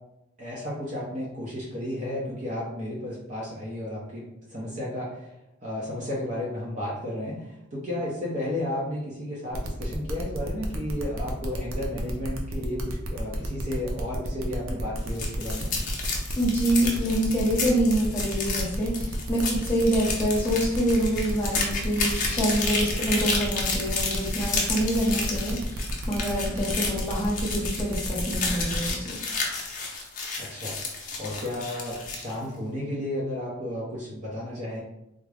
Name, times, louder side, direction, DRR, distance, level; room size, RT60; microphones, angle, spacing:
voice 1, 0.4-4.2 4.5-5.3 5.6-15.7 30.4-30.8 31.2-34.8, left 1 dB, 40° right, -6 dB, 0.6 m, -33 dB
sound 1, 9.5-28.9, right 1 dB, 85° right, 0.6 m, -35 dB
sound 2, 15.0-32.3, left 4 dB, 40° left, 0.6 m, -31 dB
voice 2, 16.4-29.2, right 1 dB, 10° left, -6 dB, 0.9 m, -26 dB
3.6 x 2.1 x 3.3 m, 0.88 s
head